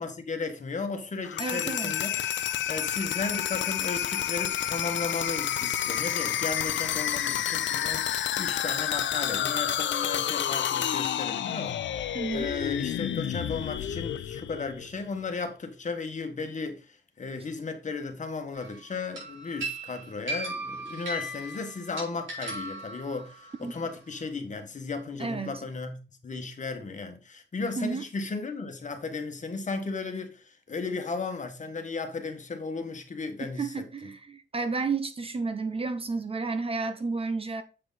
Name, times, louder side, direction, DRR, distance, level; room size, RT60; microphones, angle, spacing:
voice 1, 0.0-2.1 2.7-26.0 26.2-33.7, left 4 dB, 40° left, 1.5 m, -35 dB
sound 1, 1.2-15.1, left 10 dB, 75° left, 0.6 m, -30 dB
voice 2, 1.4-2.0 12.1-12.5 23.6-23.7 25.2-25.6 27.8-28.0 33.4-37.6, right 4 dB, 30° right, 0.7 m, -31 dB
sound 2, 18.5-18.8 19.2-23.6, right 1 dB, 90° right, 4.3 m, -37 dB
7.8 x 4.9 x 4.0 m
wide cardioid pair, 115°, 19 cm